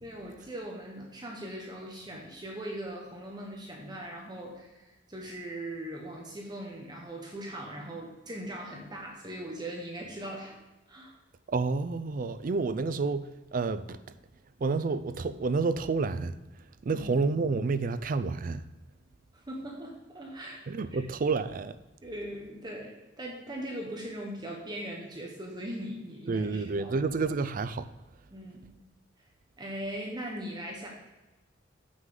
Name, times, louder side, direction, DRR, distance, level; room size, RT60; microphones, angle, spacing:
voice 1, 0.0-10.5 10.9-11.1 16.9-17.1 19.5-20.6 20.9-21.0 22.0-27.0 28.3-28.7 29.6-30.9, right 1 dB, 25° right, 1.1 m, -40 dB
voice 2, 11.5-14.0 14.6-16.3 16.8-18.6 20.7-21.7 26.3-27.9, right 4 dB, 50° right, 0.4 m, -29 dB
7.4 x 6.2 x 3.8 m
head